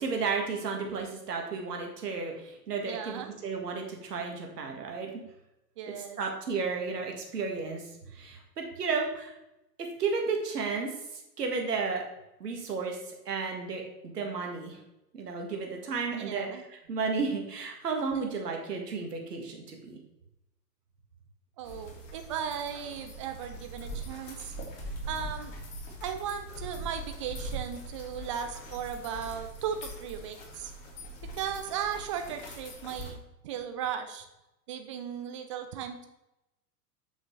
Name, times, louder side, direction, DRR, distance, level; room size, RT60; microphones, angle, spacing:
voice 1, 0.0-5.1 6.2-7.8 8.1-9.3 9.8-10.9 11.4-12.0 12.4-13.0 13.3-14.8 15.1-16.6 16.9-20.0, right 4 dB, 70° right, 2 dB, 1.9 m, -33 dB
voice 2, 2.9-3.4 5.8-6.2 16.1-16.6 18.1-18.3 21.6-24.5 25.1-25.5 26.0-30.7 31.3-34.3 34.7-36.1, right 8 dB, 20° right, 6 dB, 0.4 m, -36 dB
sound 1, 21.6-33.1, right 1 dB, 45° left, 2.4 m, -42 dB
8.0 x 6.1 x 3.3 m, 0.90 s
figure-of-eight pair, 105°, 48 cm